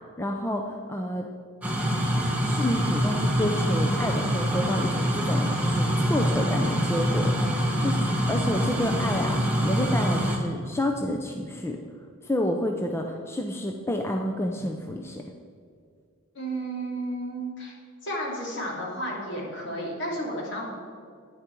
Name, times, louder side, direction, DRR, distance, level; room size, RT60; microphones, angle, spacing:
voice 1, 0.2-1.2 1.8-1.9 2.4-7.5 7.8-11.8 12.2-15.2, left 1 dB, 10° left, 2 dB, 0.5 m, -29 dB
sound 1, 1.6-10.4, equal, 5° right, 1.2 m, -25 dB
voice 2, 16.3-17.7 18.0-20.7, right 1 dB, 60° left, -3 dB, 2.8 m, -32 dB
10.5 x 9.7 x 4.6 m, 2.2 s
head